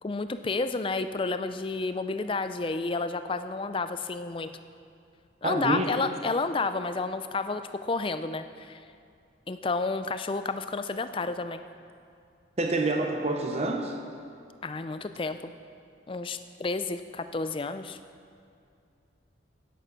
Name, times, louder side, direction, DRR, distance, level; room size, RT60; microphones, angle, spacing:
voice 1, 0.0-4.5 5.4-8.8 9.5-11.6 14.6-15.5 16.1-18.0, left 3 dB, 25° left, 10 dB, 0.4 m, -31 dB
voice 2, 5.4-5.9 12.6-14.0, right 2 dB, 35° right, 4 dB, 0.7 m, -27 dB
11.0 x 9.2 x 5.9 m, 2.4 s
head